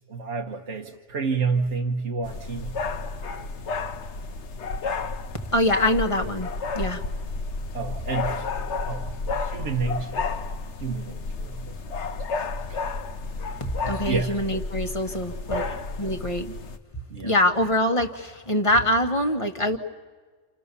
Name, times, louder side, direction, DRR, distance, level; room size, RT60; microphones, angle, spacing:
voice 1, 0.1-2.8 7.7-8.4 8.8-10.2 10.8-11.8 12.7-12.9 13.8-14.4 15.5-15.8 17.1-17.3, right 4 dB, 65° right, 2 dB, 1.6 m, -30 dB
sound 1, 2.2-16.8, left 4 dB, 60° left, 1.3 m, -31 dB
voice 2, 5.5-7.0 13.6-15.6 16.0-16.5 17.2-19.8, left 1 dB, 25° left, 5 dB, 1.6 m, -24 dB
29.5 x 28.5 x 6.9 m, 1.4 s
omnidirectional pair, 1.4 m